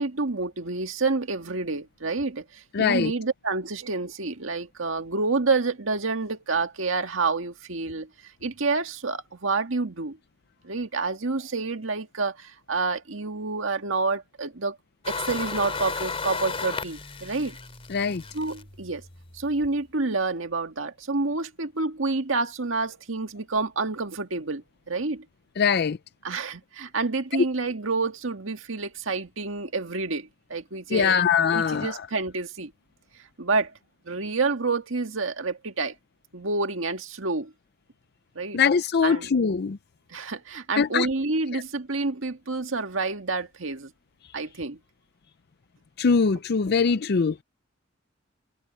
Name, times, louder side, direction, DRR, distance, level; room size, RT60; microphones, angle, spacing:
voice 1, 0.0-10.2 10.6-14.8 15.1-17.6 18.3-19.1 19.3-25.3 26.2-31.2 31.5-32.7 33.4-33.7 34.1-36.0 36.3-37.5 38.4-38.6 39.0-39.3 40.1-43.9 44.3-44.8, right 3 dB, 85° right, 1.8 m, -28 dB
voice 2, 2.7-3.1 17.9-18.2 25.6-26.0 30.9-32.0 38.5-39.8 40.8-41.1 41.5-41.6 46.0-47.4, left 6 dB, 55° left, 0.5 m, -22 dB
sound 1, 15.0-19.6, left 4 dB, 30° left, 2.9 m, -34 dB
head